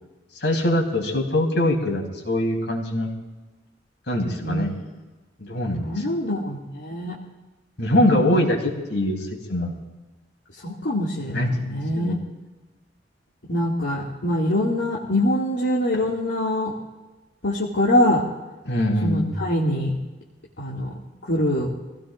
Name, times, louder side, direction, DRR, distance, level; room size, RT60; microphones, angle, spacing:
voice 1, 0.4-3.1 4.1-4.7 5.4-6.0 7.8-9.7 11.3-12.2 18.7-19.3, left 1 dB, 70° left, 1 dB, 3.7 m, -23 dB
voice 2, 4.4-5.0 5.8-7.2 10.6-12.2 13.5-16.7 17.4-18.2 19.0-19.9 20.6-20.9 21.2-21.7, left 1 dB, 90° left, -6 dB, 2.3 m, -24 dB
26.0 x 17.0 x 2.6 m, 1.2 s
head